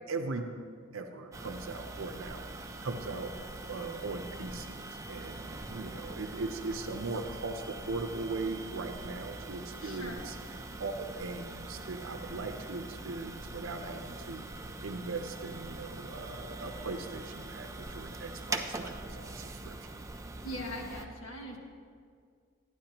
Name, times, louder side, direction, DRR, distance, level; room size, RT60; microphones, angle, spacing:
voice 1, 0.1-0.4 0.9-3.3 3.6-10.4 10.8-19.9, right 3 dB, 75° right, 5 dB, 0.6 m, -39 dB
sound 1, 1.3-21.0, right 2 dB, 15° right, 0.4 m, -43 dB
voice 2, 9.8-10.2 20.4-21.6, equal, 90° left, 1 dB, 1.5 m, -40 dB
13.0 x 9.7 x 2.9 m, 2.1 s
head